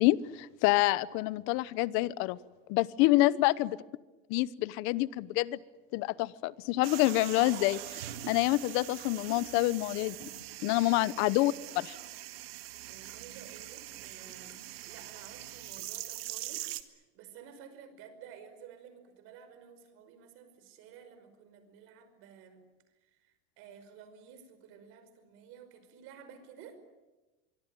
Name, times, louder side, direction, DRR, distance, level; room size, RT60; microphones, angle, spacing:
voice 1, 0.0-2.4 2.7-3.7 4.3-5.6 5.9-10.2 10.6-12.0, left 18 dB, 45° left, 19 dB, 1.0 m, -27 dB
voice 2, 3.0-3.4 10.6-10.8 12.3-14.6 14.9-22.6 23.2-26.8, right 7 dB, 45° right, 10 dB, 5.4 m, -52 dB
sound 1, 6.8-16.8, right 15 dB, 80° right, 2.1 m, -43 dB
25.5 x 23.5 x 9.2 m, 1.1 s
supercardioid pair, 160°, 30 cm